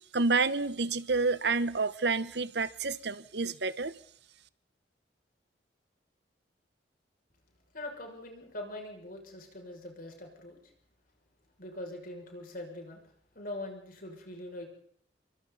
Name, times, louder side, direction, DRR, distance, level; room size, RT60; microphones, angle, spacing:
voice 1, 0.1-3.9, right 4 dB, 65° right, 1.2 m, -29 dB
voice 2, 7.7-10.6 11.6-13.1 13.3-14.7, left 1 dB, 50° left, 6.6 m, -42 dB
28.0 x 25.0 x 4.1 m
head